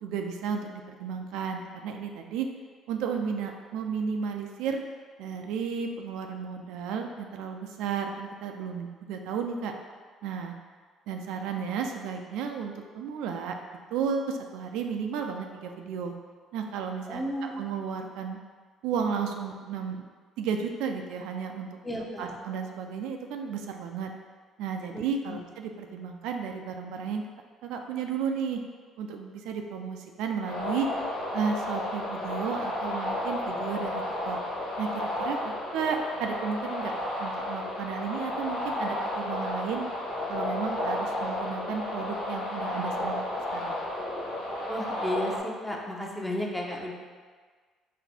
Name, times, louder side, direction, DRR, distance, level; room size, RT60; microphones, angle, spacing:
voice 1, 0.0-2.5 2.9-4.8 5.2-9.7 10.2-10.6 11.1-13.6 13.9-16.1 16.5-18.4 18.8-20.0 20.4-21.7 22.2-24.1 24.6-27.2 27.6-28.6 29.0-30.9 31.3-34.4 34.8-36.9 37.2-39.9 40.3-43.8, right 6 dB, 80° right, 4 dB, 0.3 m, -33 dB
voice 2, 17.1-17.7 21.8-22.4 24.9-25.4 44.7-46.9, equal, 5° left, -2 dB, 0.8 m, -33 dB
sound 1, 30.5-45.4, left 1 dB, 80° left, 1.0 m, -32 dB
4.1 x 2.6 x 4.2 m, 1.5 s
supercardioid pair, 75°, 0 cm